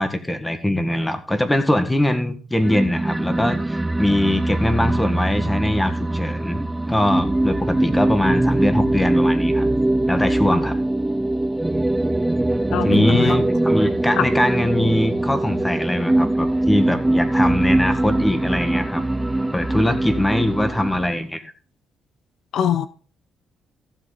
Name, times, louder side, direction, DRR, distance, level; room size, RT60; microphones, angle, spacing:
voice 1, 0.0-9.7 10.1-10.8 12.8-19.0 19.5-21.4, left 1 dB, 10° left, 1.7 m, -22 dB
sound 1, 2.6-21.2, right 1 dB, 10° right, 0.5 m, -22 dB
voice 2, 12.7-13.3 14.2-14.3 22.5-22.9, left 9 dB, 75° left, 0.7 m, -22 dB
14.5 x 7.8 x 4.0 m
cardioid pair, 90°, 0 cm